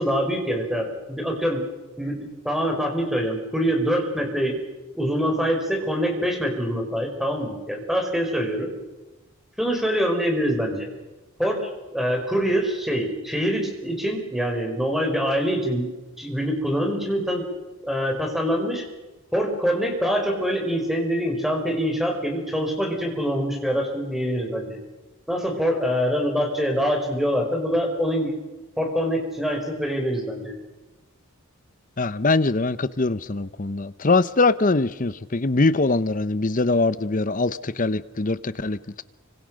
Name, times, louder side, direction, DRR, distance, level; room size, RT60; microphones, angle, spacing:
voice 1, 0.0-1.6 2.0-4.6 4.9-8.7 9.6-10.9 11.4-15.9 16.2-17.4 17.8-18.8 19.3-24.8 25.3-28.3 28.8-30.5, equal, ahead, 5.5 m, -24 dB
voice 2, 32.0-39.0, left 3 dB, 40° left, 0.8 m, -22 dB
29.5 x 26.0 x 6.5 m
head